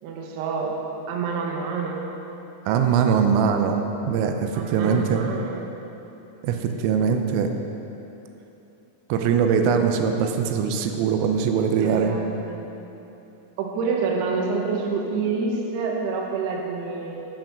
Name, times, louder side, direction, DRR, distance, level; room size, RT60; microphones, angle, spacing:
voice 1, 0.0-0.8 1.1-2.0 4.5-5.6 9.9-10.0 11.8-12.8 13.6-17.2, right 4 dB, 70° right, 0 dB, 2.7 m, -28 dB
voice 2, 2.7-5.2 6.4-7.5 9.1-12.2, right 6 dB, 90° right, 5 dB, 3.3 m, -22 dB
13.0 x 6.1 x 6.1 m, 3.0 s
omnidirectional pair, 5.8 m